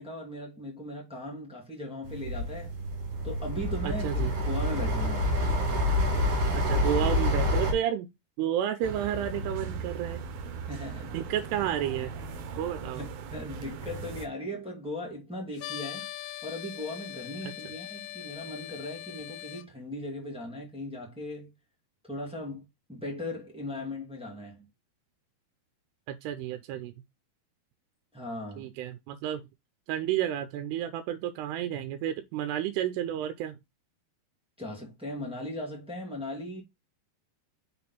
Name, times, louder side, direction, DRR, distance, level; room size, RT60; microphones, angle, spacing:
voice 1, 0.0-2.7 3.2-5.4 6.8-7.0 10.6-11.2 13.0-16.1 16.4-21.5 22.1-24.7 28.1-28.7 34.6-36.6, left 1 dB, 5° right, 0.7 m, -38 dB
sound 1, 2.0-7.7, left 1 dB, 55° right, 3.5 m, -27 dB
voice 2, 3.8-4.3 6.5-8.1 8.4-10.2 11.1-12.1 12.6-13.0 26.1-26.9 28.6-29.4 29.9-33.6, right 11 dB, 90° right, 2.7 m, -31 dB
sound 2, 8.8-14.3, right 4 dB, 75° right, 2.7 m, -38 dB
sound 3, 15.6-19.6, left 15 dB, 80° left, 2.5 m, -41 dB
6.2 x 4.3 x 4.0 m
omnidirectional pair, 4.6 m